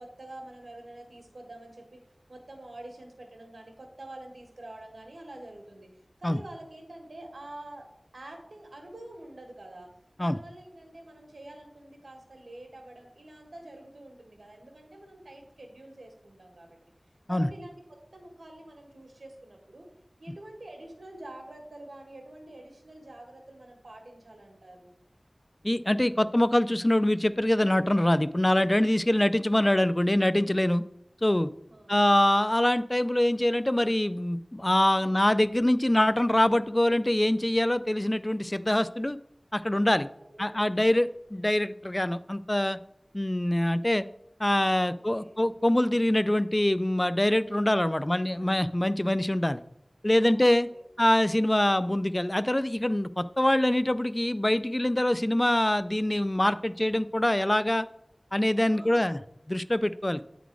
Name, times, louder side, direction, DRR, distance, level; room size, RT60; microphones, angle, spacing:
voice 1, 0.0-1.9 2.3-5.9 6.2-7.9 8.1-9.9 10.2-16.8 17.3-19.9 20.2-24.9 31.7-32.0 34.9-35.2 40.0-41.1 44.8-45.3 47.9-48.5 50.2-50.8 58.7-59.2, right 1 dB, 85° right, 2 dB, 1.6 m, -47 dB
voice 2, 25.6-30.8 31.2-31.5 31.9-39.2 39.5-40.1 40.4-42.8 43.1-44.0 44.4-49.6 50.0-50.7 51.0-57.9 58.3-59.2 59.5-60.2, left 1 dB, 25° left, 14 dB, 0.3 m, -24 dB
9.2 x 4.1 x 4.6 m, 0.76 s
wide cardioid pair, 45°, 0 cm